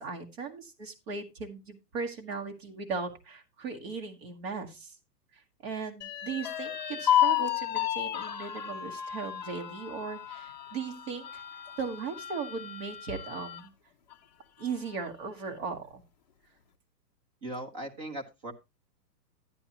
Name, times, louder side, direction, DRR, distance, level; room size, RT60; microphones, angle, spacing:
voice 1, 0.0-4.9 5.3-11.4 11.8-13.7 14.6-16.0, right 5 dB, 40° right, 3 dB, 1.5 m, -38 dB
sound 1, 6.0-13.6 14.1-14.2 14.6-15.3, left 11 dB, 30° left, 0.5 m, -32 dB
voice 2, 17.4-18.5, right 1 dB, 20° right, 3 dB, 0.9 m, -38 dB
10.5 x 9.8 x 2.9 m, 0.24 s
hypercardioid pair, 175°, 50 cm